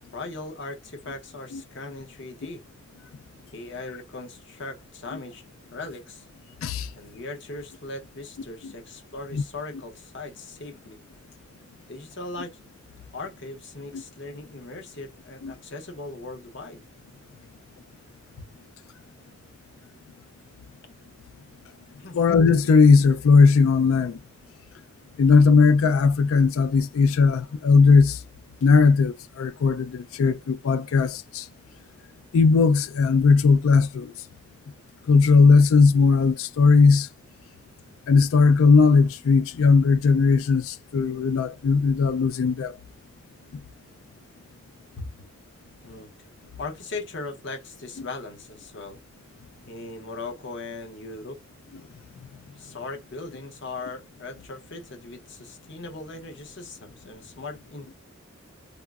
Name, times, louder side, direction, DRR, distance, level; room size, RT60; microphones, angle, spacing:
voice 1, 0.1-2.6 3.5-5.4 5.7-6.3 6.9-11.0 11.9-12.6 13.1-16.8 18.4-18.5 22.0-22.2 45.0-45.2 45.8-46.1 46.6-49.0 49.7-51.4 52.5-57.9, left 3 dB, 55° left, 0.7 m, -38 dB
voice 2, 22.1-24.2 25.2-28.2 28.6-31.4 32.3-34.1 35.1-37.1 38.1-42.8, left 4 dB, 75° left, 0.4 m, -18 dB
3.5 x 2.0 x 2.3 m
head